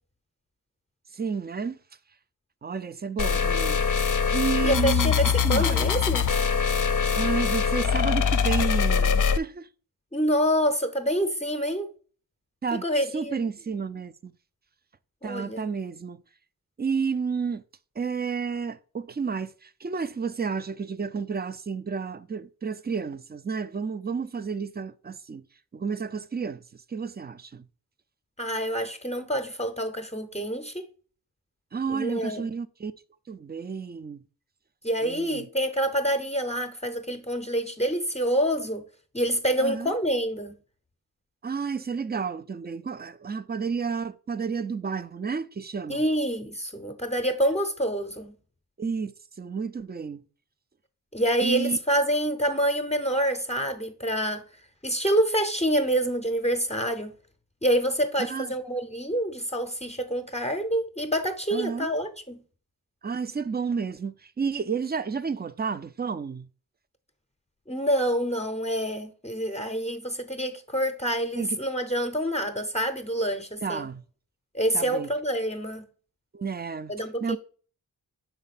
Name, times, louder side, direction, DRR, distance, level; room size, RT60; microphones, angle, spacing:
voice 1, 1.1-1.8 2.6-3.8 4.3-5.1 5.4-5.9 7.1-9.7 12.6-12.8 13.1-14.3 15.2-16.2 16.8-17.6 18.0-25.4 25.7-26.6 26.9-27.7 31.7-32.9 33.3-34.2 35.0-35.5 39.6-39.9 41.4-46.0 48.8-49.1 49.4-50.2 51.4-51.8 58.3-58.5 61.5-61.9 63.0-66.5 71.4-71.6 73.6-74.0 74.7-75.1 76.3-76.9 77.2-77.4, right 5 dB, 25° right, 0.4 m, -31 dB
sound 1, 3.2-9.4, left 6 dB, 55° left, 0.5 m, -23 dB
voice 2, 4.6-6.2 10.1-11.9 12.8-13.4 15.2-15.6 28.4-30.9 31.9-32.5 34.8-38.8 39.1-40.5 45.9-48.3 51.1-54.4 54.8-57.1 57.6-62.4 67.7-73.9 74.5-75.8 76.9-77.4, equal, 20° left, 0.7 m, -27 dB
5.6 x 4.5 x 4.0 m
wide cardioid pair, 85°, 37 cm